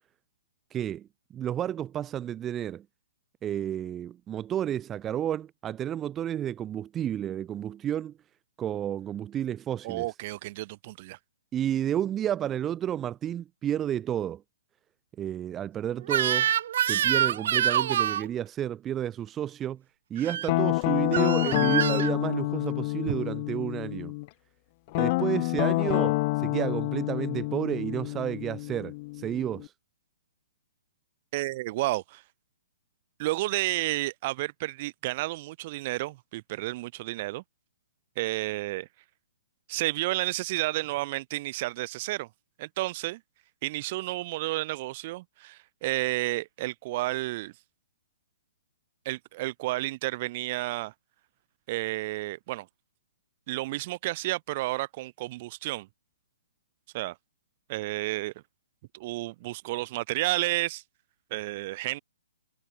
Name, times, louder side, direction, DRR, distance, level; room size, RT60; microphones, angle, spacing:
voice 1, 0.7-1.1 1.3-2.8 3.4-8.1 8.6-10.1 11.5-14.4 15.2-16.5 16.8-19.8 20.1-24.1 25.0-29.7, right 10 dB, 15° right, 1.9 m, -31 dB
voice 2, 9.8-11.2 23.1-23.2 31.3-32.2 33.2-37.4 38.2-38.9 39.7-42.3 42.6-43.2 43.6-47.5 49.1-50.9 51.7-52.7 53.5-55.9 56.9-57.2 57.7-58.3 58.9-60.8 61.3-62.0, right 19 dB, 35° right, 2.2 m, -31 dB
Crying sobbing / Screech, 16.1-18.3 20.2-20.5 21.1-22.1, right 10 dB, 55° right, 2.4 m, -26 dB
Guitar, 20.5-24.3 24.9-29.7, left 24 dB, 35° left, 4.3 m, -28 dB
hypercardioid pair, 155°, 0 cm